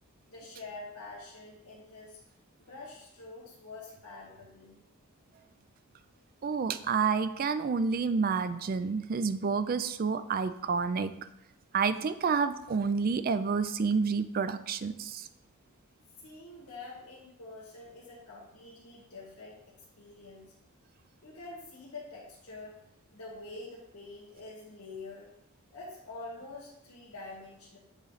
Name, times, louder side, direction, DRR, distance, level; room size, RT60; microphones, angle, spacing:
voice 1, 0.3-2.2 2.6-4.8 16.2-20.4 21.2-22.7 23.1-25.3 25.7-27.8, left 3 dB, 80° left, -5 dB, 1.7 m, -46 dB
voice 2, 6.4-11.1 11.7-15.3, right 5 dB, 40° right, 12 dB, 0.3 m, -29 dB
8.0 x 3.2 x 4.0 m, 0.82 s
head